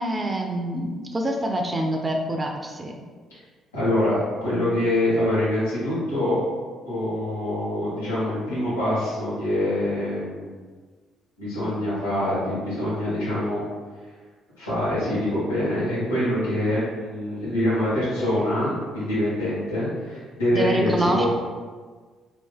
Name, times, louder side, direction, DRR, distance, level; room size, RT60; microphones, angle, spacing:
voice 1, 0.0-3.0 20.5-21.3, right 1 dB, 25° right, 2 dB, 0.5 m, -26 dB
voice 2, 3.7-6.4 6.8-10.5 11.4-13.6 14.6-21.3, left 1 dB, 85° left, -11 dB, 1.5 m, -25 dB
3.3 x 2.5 x 3.4 m, 1.5 s
figure-of-eight pair, 45°, 0 cm